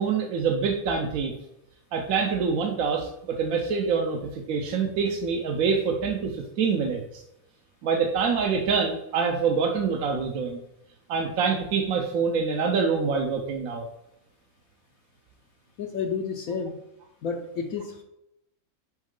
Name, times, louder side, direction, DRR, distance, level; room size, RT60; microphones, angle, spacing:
voice 1, 0.0-1.3 1.9-7.2 7.8-10.6 11.1-13.8, right 5 dB, 70° right, 1 dB, 1.1 m, -25 dB
voice 2, 15.8-16.8 17.2-18.0, left 5 dB, 70° left, 3 dB, 1.0 m, -31 dB
6.1 x 5.4 x 3.7 m, 0.86 s
omnidirectional pair, 1.6 m